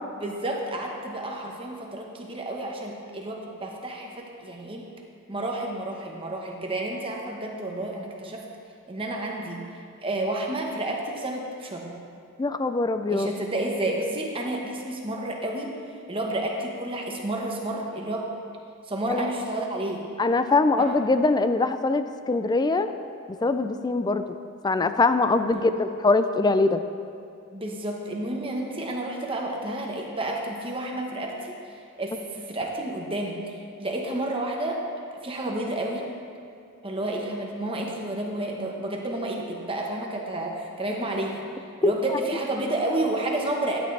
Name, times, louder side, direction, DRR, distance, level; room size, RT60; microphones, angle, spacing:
voice 1, 0.2-4.9 5.3-8.4 8.9-9.6 10.0-12.0 13.1-15.7 16.1-18.3 18.8-20.1 20.8-21.0 25.4-25.6 27.5-34.8 35.2-36.0 36.8-41.4 41.8-43.8, right 1 dB, 25° right, 0 dB, 1.1 m, -30 dB
voice 2, 12.4-13.3 19.1-19.3 20.2-22.9 23.3-24.2 24.6-26.8 41.8-41.9, left 3 dB, 20° left, 10 dB, 0.3 m, -22 dB
12.5 x 9.4 x 3.3 m, 2.4 s
head